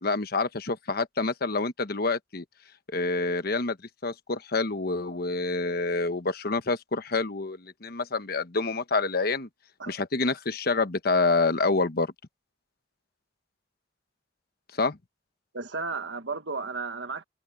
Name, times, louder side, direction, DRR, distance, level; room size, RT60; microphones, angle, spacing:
voice 1, 0.0-2.4 2.9-3.8 4.0-9.5 9.9-12.1 14.8-15.0, left 3 dB, 55° left, 1.2 m, -27 dB
voice 2, 15.5-17.2, right 4 dB, 70° right, 1.5 m, -33 dB
head